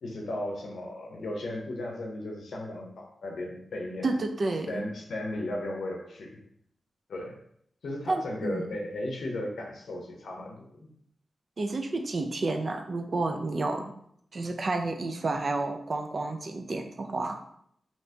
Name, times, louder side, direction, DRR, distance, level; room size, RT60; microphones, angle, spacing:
voice 1, 0.0-4.1 4.7-6.4 7.1-7.4 7.8-10.9, left 1 dB, 80° left, 0 dB, 0.6 m, -35 dB
voice 2, 4.0-4.8 8.1-8.7 11.6-13.9 14.3-17.4, right 2 dB, 50° right, 5 dB, 0.4 m, -30 dB
3.2 x 2.8 x 2.8 m, 0.69 s
cardioid pair, 70°, 0 cm